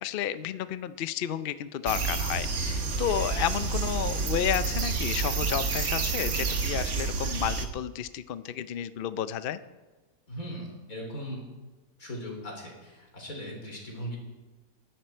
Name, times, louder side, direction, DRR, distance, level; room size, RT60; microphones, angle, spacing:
voice 1, 0.0-9.6, left 10 dB, 80° left, 13 dB, 0.5 m, -31 dB
sound 1, 1.9-7.7, right 4 dB, 60° right, 1.7 m, -29 dB
sound 2, 2.9-7.3, right 5 dB, 85° right, 2.1 m, -46 dB
voice 2, 10.3-11.4 12.0-14.2, equal, 60° left, 0 dB, 4.2 m, -38 dB
20.0 x 11.5 x 4.4 m, 1.2 s
omnidirectional pair, 1.7 m